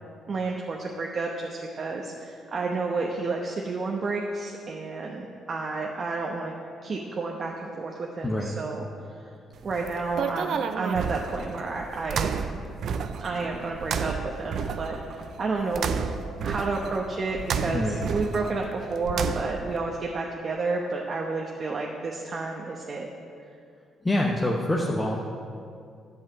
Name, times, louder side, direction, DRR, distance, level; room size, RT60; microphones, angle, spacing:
voice 1, 0.3-6.6 6.8-8.9 9.2-9.3 9.6-12.6 13.2-16.0 16.4-23.1, right 3 dB, 45° right, 0 dB, 1.0 m, -31 dB
voice 2, 8.2-8.5 17.7-18.0 24.0-25.2, left 1 dB, 20° left, -1 dB, 1.0 m, -25 dB
sound 1, 9.6-19.8, right 6 dB, 65° right, 0.5 m, -32 dB
Musical instrument, 14.5-18.8, right 1 dB, 35° left, 2.2 m, -48 dB
11.0 x 5.6 x 7.9 m, 2.4 s
cardioid pair, 90°, 0 cm